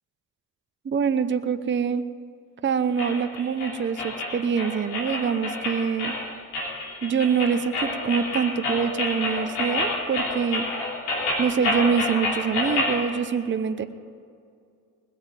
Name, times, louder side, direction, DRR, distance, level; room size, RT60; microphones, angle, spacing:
voice 1, 0.8-2.0 2.6-6.1 7.0-10.7 11.4-13.8, right 6 dB, 25° right, 10 dB, 0.8 m, -25 dB
sound 1, 3.0-13.0, left 2 dB, 80° left, 3.0 m, -28 dB
20.5 x 7.5 x 7.4 m, 2.3 s
hypercardioid pair, 50°, 46 cm